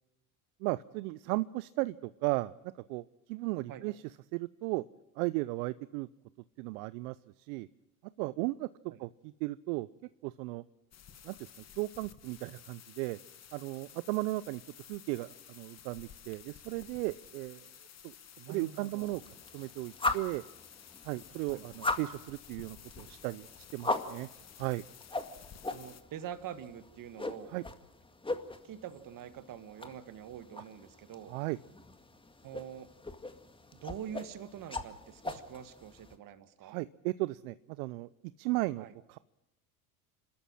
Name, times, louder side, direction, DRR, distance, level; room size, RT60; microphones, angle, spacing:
voice 1, 0.6-2.5 2.9-4.0 4.3-4.8 5.2-6.1 6.6-7.7 8.2-8.7 9.0-9.9 10.2-10.6 11.2-11.4 11.8-13.2 13.5-14.6 14.9-17.7 18.0-18.1 18.5-19.2 19.5-20.4 21.0-24.3 24.6-24.8 27.5-27.6 31.3-31.6 36.6-38.1 38.4-39.2, right 21 dB, 70° right, 17 dB, 0.7 m, -35 dB
sound 1, 10.9-26.0, left 8 dB, 35° left, 1.8 m, -54 dB
voice 2, 18.4-19.1 21.5-21.6 25.7-27.5 28.6-31.3 32.4-32.9 33.8-36.8 38.8-38.9, right 9 dB, 45° right, 11 dB, 2.0 m, -45 dB
sound 2, 19.0-36.2, left 2 dB, 10° left, 2.0 m, -40 dB
28.0 x 13.0 x 7.6 m, 0.93 s
hypercardioid pair, 80°, 44 cm